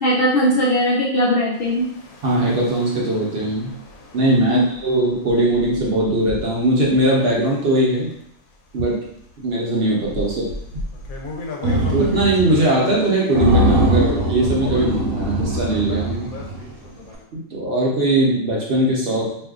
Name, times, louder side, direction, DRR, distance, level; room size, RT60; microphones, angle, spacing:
voice 1, 0.0-1.9 4.5-4.7, equal, 65° left, -7 dB, 0.6 m, -19 dB
sound 1, 1.5-8.3 8.8-17.2, left 3 dB, 85° left, 1.0 m, -35 dB
voice 2, 2.2-3.7 4.1-8.1 8.7-9.0 9.4-10.5 11.9-16.3 17.3-19.3, right 1 dB, 55° right, -4 dB, 0.8 m, -20 dB
sound 2, 11.6-12.6 12.9-13.0 13.3-16.7, right 1 dB, 75° right, 1.0 m, -21 dB
2.6 x 2.4 x 3.5 m, 0.73 s
omnidirectional pair, 1.5 m